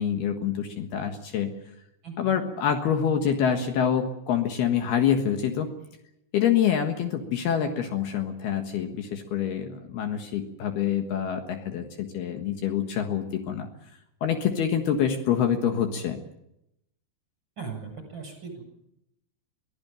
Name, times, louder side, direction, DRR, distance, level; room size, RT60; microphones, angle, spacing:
voice 1, 0.0-1.5 2.2-5.7 6.3-13.7 14.2-16.2, left 8 dB, 70° left, 5 dB, 3.3 m, -26 dB
voice 2, 2.0-2.4 17.6-18.5, right 5 dB, 25° right, 4 dB, 8.4 m, -38 dB
23.5 x 15.0 x 9.0 m, 0.83 s
omnidirectional pair, 5.0 m